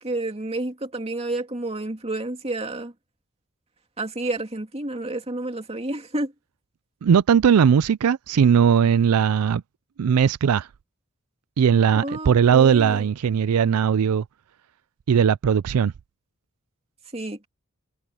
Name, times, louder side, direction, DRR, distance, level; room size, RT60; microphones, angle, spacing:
voice 1, 0.0-2.9 4.0-6.3 11.9-13.0 17.1-17.5, right 2 dB, 30° right, 2.4 m, -30 dB
voice 2, 7.0-9.6 10.0-10.7 11.6-14.2 15.1-15.9, right 7 dB, 90° right, 0.4 m, -18 dB
head